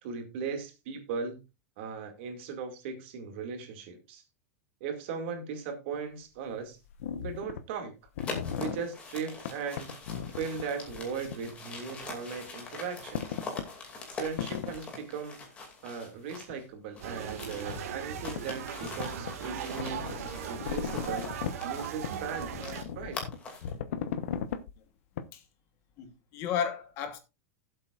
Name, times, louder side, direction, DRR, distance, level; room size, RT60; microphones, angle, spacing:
voice 1, 0.0-1.4 1.8-4.2 4.8-6.8 7.2-7.9 8.6-9.9 10.3-13.4 14.2-15.4 15.8-20.1 20.4-21.3 21.6-22.7 23.0-23.2, right 5 dB, 50° right, 2.3 m, -38 dB
sound 1, 5.9-6.0 6.9-7.6 8.1-8.8 9.5-11.5 11.8-11.9 13.1-13.7 14.3-14.8 16.5-16.6 17.7-17.8 18.2-18.4 18.8-19.4 19.7-21.6 22.0-24.7 25.2-25.3, left 8 dB, 70° left, 1.0 m, -36 dB
sound 2, 8.2-16.6 16.9-23.7, left 3 dB, 15° left, 2.5 m, -44 dB
sound 3, 17.0-22.8, right 7 dB, 75° right, 1.9 m, -38 dB
voice 2, 26.0-27.2, left 8 dB, 30° left, 1.3 m, -33 dB
17.5 x 7.7 x 2.5 m
supercardioid pair, 180°, 8 cm